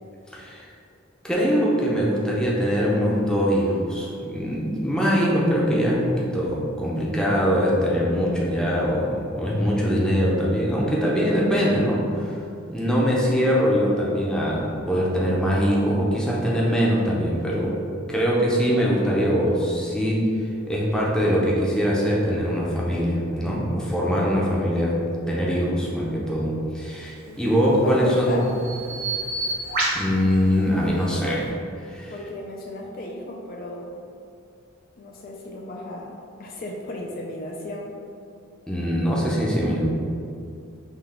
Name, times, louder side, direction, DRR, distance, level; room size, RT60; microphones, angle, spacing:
voice 1, 0.3-0.7 1.2-12.4 12.7-17.7 18.1-20.2 20.7-25.0 25.3-28.3 29.9-31.5 31.9-32.1 38.7-39.8, equal, 5° left, -5 dB, 0.6 m, -22 dB
voice 2, 27.3-28.5 32.1-34.0 35.0-38.0, left 1 dB, 45° left, -1 dB, 0.4 m, -35 dB
Bird vocalization bird call bird song, 27.3-31.5, right 2 dB, 45° right, 1.0 m, -31 dB
5.5 x 2.3 x 3.5 m, 2.5 s
head